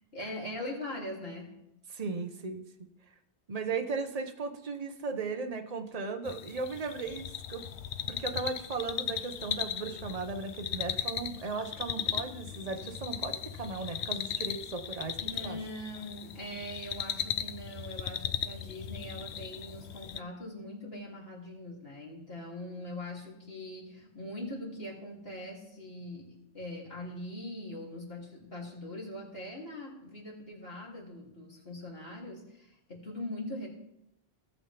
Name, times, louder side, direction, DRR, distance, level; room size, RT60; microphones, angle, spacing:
voice 1, 0.1-1.6 15.2-33.7, left 1 dB, 60° left, -3 dB, 3.3 m, -42 dB
voice 2, 1.9-2.6 3.5-7.2 7.5-7.6 8.0-15.2 15.4-15.6, right 4 dB, 35° right, 6 dB, 1.1 m, -36 dB
sound 1, 6.3-20.2, left 9 dB, 80° left, 0.9 m, -37 dB
17.5 x 7.3 x 3.4 m, 0.82 s
omnidirectional pair, 1.1 m